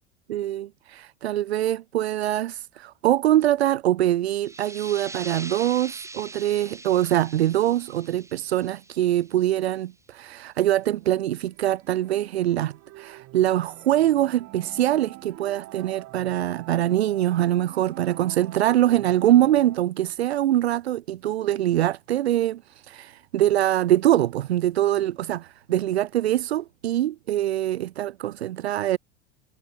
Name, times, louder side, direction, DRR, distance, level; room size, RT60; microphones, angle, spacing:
voice 1, 0.3-29.0, right 13 dB, 70° right, 1.1 m, -23 dB
sound 1, 4.3-9.7, right 2 dB, 10° right, 2.5 m, -42 dB
sound 2, 10.8-19.8, right 19 dB, 45° right, 6.3 m, -46 dB
figure-of-eight pair, 80°, 32 cm